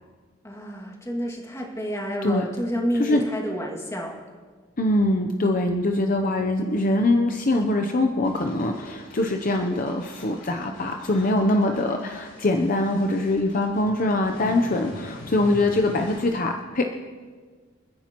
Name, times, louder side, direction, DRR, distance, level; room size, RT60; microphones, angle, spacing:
voice 1, 0.4-4.2, equal, 15° left, -1 dB, 2.2 m, -29 dB
voice 2, 4.8-16.8, left 2 dB, 45° left, 4 dB, 0.7 m, -23 dB
sound 1, 8.2-16.2, left 1 dB, 80° left, 5.4 m, -43 dB
28.5 x 10.0 x 3.0 m, 1.5 s
head